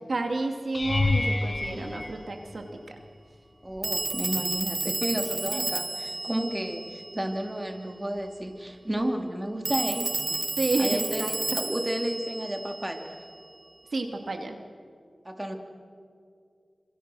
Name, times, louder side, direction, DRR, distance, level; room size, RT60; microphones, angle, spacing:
voice 1, 0.1-3.0 5.3-5.7 10.6-11.6 13.9-14.6, right 2 dB, 75° right, 4 dB, 2.5 m, -31 dB
sound 1, 0.7-3.0 3.7-4.2 4.5-4.7 9.0-9.1, left 2 dB, 45° left, 1.2 m, -29 dB
Telephone, 1.6-1.7 3.8-7.5 9.6-13.3, right 2 dB, 55° right, 1.4 m, -32 dB
voice 2, 1.7-2.1 3.6-10.5 10.8-13.1 15.2-15.6, right 1 dB, 20° right, 4 dB, 2.8 m, -32 dB
28.5 x 27.0 x 6.4 m, 2.3 s
wide cardioid pair, 55°, 0 cm